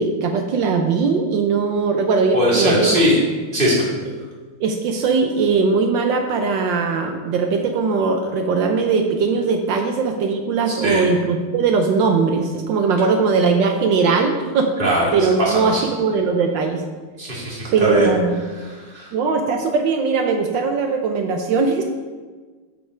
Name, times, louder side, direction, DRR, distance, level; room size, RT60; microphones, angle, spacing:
voice 1, 0.0-2.9 4.6-14.7 15.1-16.8 17.7-18.4 19.1-21.8, right 4 dB, 70° right, 4 dB, 1.2 m, -20 dB
voice 2, 2.3-3.1 3.5-3.9 10.8-11.0 14.8-15.1 15.4-15.8 17.2-18.1 18.6-19.1, equal, 25° right, -6 dB, 2.2 m, -20 dB
6.8 x 5.3 x 4.9 m, 1.4 s
omnidirectional pair, 2.4 m